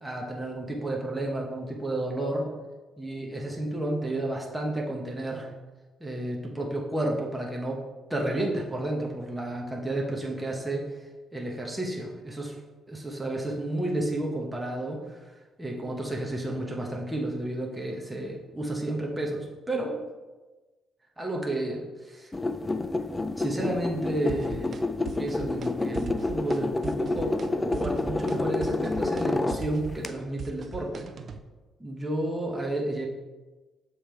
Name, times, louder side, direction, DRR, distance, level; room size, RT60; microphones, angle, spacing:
voice 1, 0.0-2.5 3.0-5.5 6.0-7.8 8.1-11.0 11.3-12.6 12.9-15.3 15.6-20.0 21.2-22.3 23.4-24.8 25.2-31.1 31.8-33.1, right 1 dB, 10° right, -1 dB, 1.0 m, -31 dB
sound 1, 22.3-30.1, left 2 dB, 20° left, 0.4 m, -29 dB
sound 2, 24.3-24.8 25.1-25.7 25.9-26.6 26.8-27.5 27.7-31.4, right 5 dB, 50° right, 0.4 m, -39 dB
7.2 x 3.3 x 4.5 m, 1.2 s
cardioid pair, 90°, 0 cm